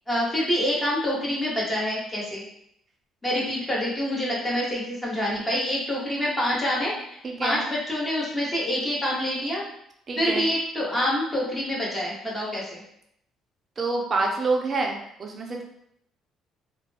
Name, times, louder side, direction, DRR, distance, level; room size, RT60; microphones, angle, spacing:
voice 1, 0.1-2.4 3.2-9.7 10.2-12.8, equal, 15° left, -5 dB, 0.9 m, -26 dB
voice 2, 7.2-7.6 10.1-10.5 13.8-15.6, right 3 dB, 35° right, 1 dB, 0.5 m, -27 dB
2.3 x 2.1 x 3.2 m, 0.73 s
cardioid pair, 115°, 0 cm